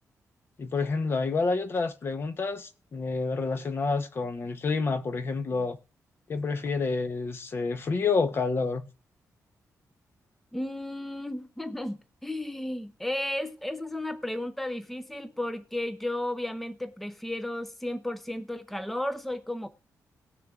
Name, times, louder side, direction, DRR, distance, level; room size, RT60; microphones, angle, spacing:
voice 1, 0.6-5.8 6.3-8.9, left 4 dB, 40° left, 0.8 m, -28 dB
voice 2, 10.5-19.7, left 1 dB, 5° left, 0.6 m, -33 dB
19.5 x 6.6 x 2.4 m
wide cardioid pair, 145°, 6 cm